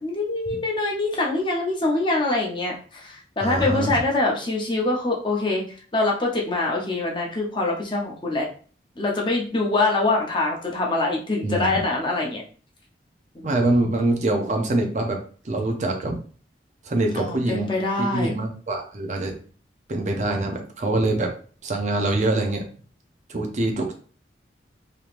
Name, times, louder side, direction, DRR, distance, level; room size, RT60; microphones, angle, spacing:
voice 1, 0.0-5.6 5.9-8.5 9.0-12.4 13.3-13.5 17.2-18.3, left 2 dB, 25° left, -1 dB, 0.7 m, -24 dB
voice 2, 3.4-3.9 11.4-11.8 13.4-15.2 15.4-16.2 16.8-17.7 18.0-19.4 19.9-21.3 21.6-22.6 23.3-24.0, right 2 dB, 40° right, 2 dB, 0.5 m, -24 dB
3.3 x 2.9 x 2.5 m, 0.43 s
head